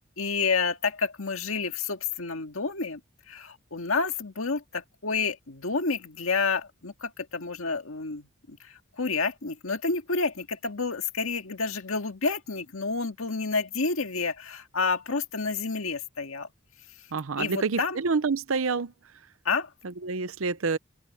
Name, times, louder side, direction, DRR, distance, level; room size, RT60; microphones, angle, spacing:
voice 1, 0.0-3.0 3.3-16.5 17.4-18.0 19.5-19.7, left 4 dB, 85° left, 1.9 m, -29 dB
voice 2, 17.1-18.9 19.8-20.8, right 4 dB, 80° right, 0.7 m, -28 dB
open air
head